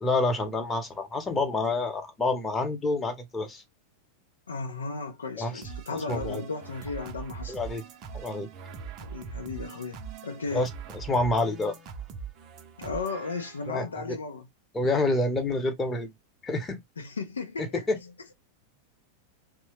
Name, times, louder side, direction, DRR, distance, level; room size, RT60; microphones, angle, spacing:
voice 1, 0.0-3.6 5.4-5.6 5.9-6.4 7.5-7.8 8.2-8.5 10.5-10.7 11.1-11.7 13.7-14.0 14.7-16.1 16.4-16.8 17.6-18.0, left 2 dB, 15° left, 0.9 m, -28 dB
voice 2, 4.5-7.6 9.0-10.7 12.8-14.5 17.0-18.1, left 4 dB, 70° left, 0.5 m, -35 dB
sound 1, 5.6-13.8, right 6 dB, 35° right, 0.6 m, -42 dB
3.1 x 2.1 x 3.1 m
figure-of-eight pair, 90°, 0 cm